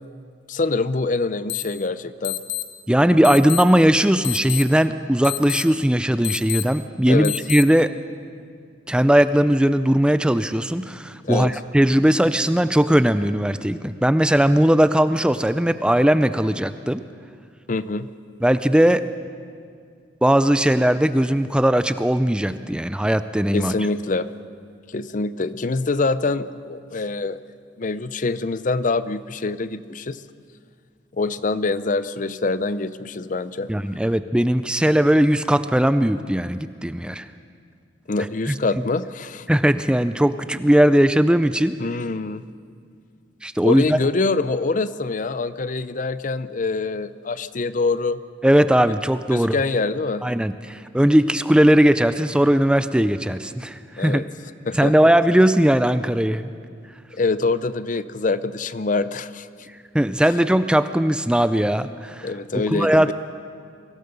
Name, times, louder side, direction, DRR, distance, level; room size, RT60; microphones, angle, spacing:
voice 1, 0.5-2.4 7.1-7.4 11.2-11.6 17.7-18.1 23.5-24.3 24.9-27.4 27.8-30.2 31.2-33.7 38.1-39.5 41.8-42.4 43.6-48.2 49.3-50.2 54.0-54.2 54.7-54.9 57.1-59.5 62.2-63.1, left 3 dB, 45° left, 15 dB, 0.5 m, -25 dB
sound 1, 1.5-1.6 2.2-2.6 3.2-3.6 4.2-4.6 5.2-5.6 6.2-6.6 7.2-7.6, left 18 dB, 85° left, 1.3 m, -27 dB
voice 2, 2.9-7.9 8.9-17.0 18.4-19.0 20.2-23.7 33.7-37.3 38.5-38.6 39.5-41.7 43.4-44.0 48.4-49.6 50.2-54.2 54.7-56.5 59.9-62.3 62.7-63.1, equal, 5° right, 12 dB, 0.4 m, -18 dB
24.0 x 16.0 x 6.8 m, 2.2 s
head